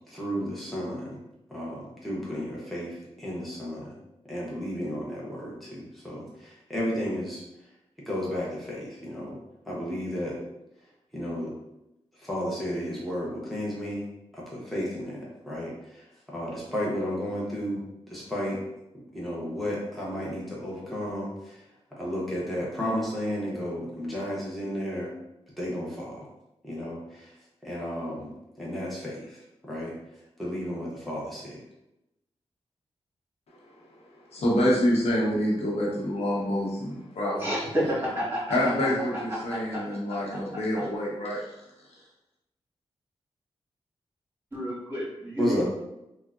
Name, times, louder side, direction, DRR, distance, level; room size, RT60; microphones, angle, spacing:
voice 1, 0.1-1.2 1.5-4.0 4.3-7.4 8.1-9.4 9.7-10.4 11.1-11.5 12.2-14.0 14.3-17.8 18.1-18.6 18.9-21.6 22.0-25.1 25.6-26.3 26.6-27.3 27.6-28.3 28.6-29.9 30.4-31.6 45.4-45.6, equal, ahead, -6 dB, 0.7 m, -33 dB
voice 2, 34.3-37.3 38.5-41.4, left 1 dB, 80° left, -4 dB, 0.8 m, -26 dB
voice 3, 37.3-38.7 39.3-39.8 40.3-40.4 44.5-45.6, equal, 20° right, -7 dB, 1.4 m, -30 dB
3.5 x 2.0 x 2.4 m, 0.90 s
wide cardioid pair, 85°, 11 cm